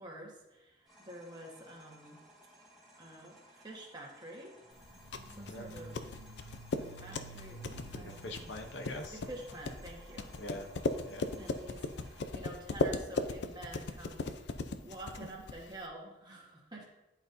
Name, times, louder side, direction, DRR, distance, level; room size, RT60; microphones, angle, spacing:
voice 1, 0.0-2.2 3.0-4.5 5.3-6.2 6.8-8.4 9.1-10.3 11.4-16.9, right 1 dB, 25° right, -2 dB, 1.4 m, -48 dB
sound 1, 0.8-12.2, equal, ahead, 1.7 m, -59 dB
sound 2, 4.8-15.8, left 3 dB, 65° left, 0.5 m, -38 dB
sound 3, 4.8-9.7, right 3 dB, 50° right, 0.8 m, -52 dB
voice 2, 8.0-9.2 10.4-10.7 11.0-11.2, left 1 dB, 85° left, 4 dB, 0.9 m, -43 dB
11.0 x 4.0 x 2.7 m, 0.97 s
head